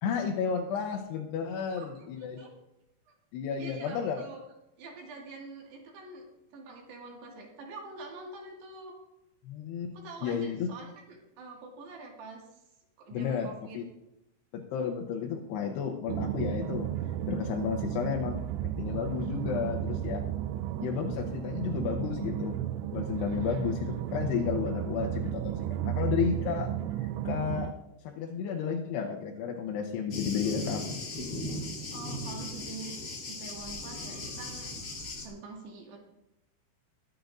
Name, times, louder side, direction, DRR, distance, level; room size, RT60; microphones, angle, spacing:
voice 1, 0.0-2.4 3.3-4.2 9.5-9.9 10.2-10.7 13.1-13.5 13.7-13.8 14.5-16.9 17.3-20.2 20.8-22.6 22.9-26.7 27.0-27.7 28.0-31.0, left 7 dB, 80° left, 1 dB, 2.7 m, -32 dB
voice 2, 1.8-2.1 2.4-2.5 3.1-3.2 3.5-4.4 4.8-6.3 6.5-8.9 9.9-12.6 13.0-13.8 23.1-23.8 31.9-34.7 35.2-36.0, right 3 dB, 70° right, 0 dB, 3.9 m, -45 dB
sound 1, 16.1-27.7, right 12 dB, 85° right, 2.4 m, -33 dB
Thunder, 30.1-35.3, left 2 dB, 50° left, 1.4 m, -38 dB
22.0 x 9.1 x 2.6 m, 0.88 s
omnidirectional pair, 5.2 m